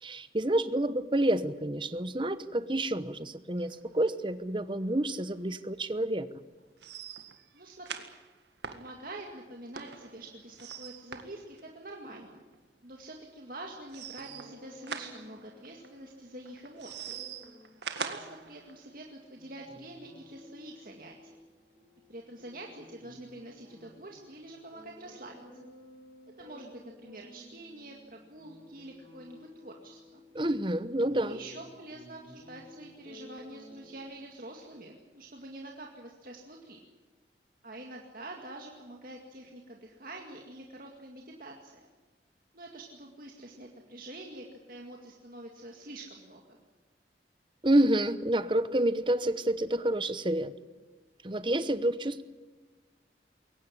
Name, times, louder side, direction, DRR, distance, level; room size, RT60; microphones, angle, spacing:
voice 1, 0.0-6.3 30.3-31.4 47.6-50.5 51.2-52.2, right 1 dB, 30° right, 13 dB, 1.0 m, -28 dB
sound 1, 3.6-4.1 4.5-4.6 4.9-5.0 5.4-5.5 6.8-12.1 12.4-12.5 13.9-15.9 16.5-18.8, right 6 dB, 80° right, 1.8 m, -43 dB
voice 2, 7.5-8.1 8.7-12.4 12.8-17.2 17.9-21.4 22.1-25.3 26.4-30.2 31.1-36.8 37.6-41.9 42.5-46.6, right 1 dB, 50° right, 0 dB, 2.2 m, -46 dB
sound 2, 14.2-34.0, left 1 dB, 35° left, 7.6 m, -55 dB
22.5 x 18.0 x 10.0 m, 1.3 s
head